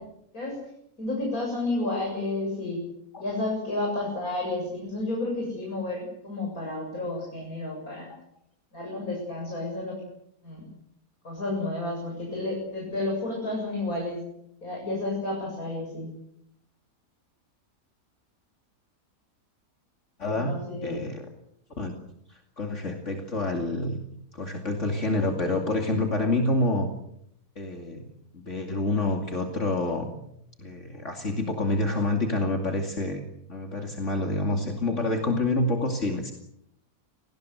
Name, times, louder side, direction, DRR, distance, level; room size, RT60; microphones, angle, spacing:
voice 1, 1.0-2.8 3.2-8.1 8.7-10.0 10.4-10.6 11.2-14.2 14.6-16.1 20.3-21.1, left 2 dB, 70° left, -1 dB, 7.9 m, -31 dB
voice 2, 20.2-20.6 20.8-21.2 21.8-21.9 22.3-24.0 24.3-26.9 27.6-28.0 28.3-30.1 30.6-36.3, left 2 dB, 55° left, 3 dB, 2.8 m, -27 dB
28.0 x 19.0 x 8.1 m, 0.76 s
omnidirectional pair, 1.5 m